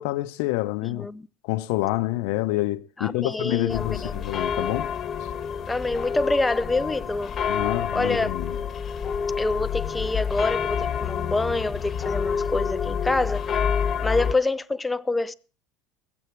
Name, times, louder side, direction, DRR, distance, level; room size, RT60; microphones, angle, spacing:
voice 1, 0.0-1.1 1.4-4.9 7.5-8.6, left 17 dB, 75° left, 0.7 m, -27 dB
voice 2, 0.8-1.3 3.0-4.1 5.7-7.5 7.9-8.3 9.4-13.6 14.0-15.3, left 2 dB, 10° left, 0.5 m, -26 dB
sound 1, 3.7-14.3, left 7 dB, 30° left, 1.3 m, -28 dB
20.5 x 7.8 x 4.6 m
supercardioid pair, 120°, 0 cm